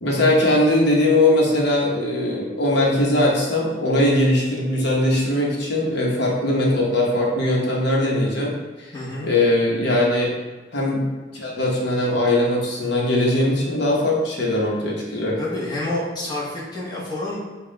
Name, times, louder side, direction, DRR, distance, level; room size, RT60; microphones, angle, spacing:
voice 1, 0.0-8.9 9.2-10.3 10.7-11.1 11.3-15.4, left 1 dB, 60° left, -3 dB, 1.0 m, -20 dB
voice 2, 8.9-9.3 15.4-17.4, left 1 dB, 20° left, -6 dB, 1.1 m, -28 dB
5.3 x 2.3 x 4.0 m, 1.3 s
head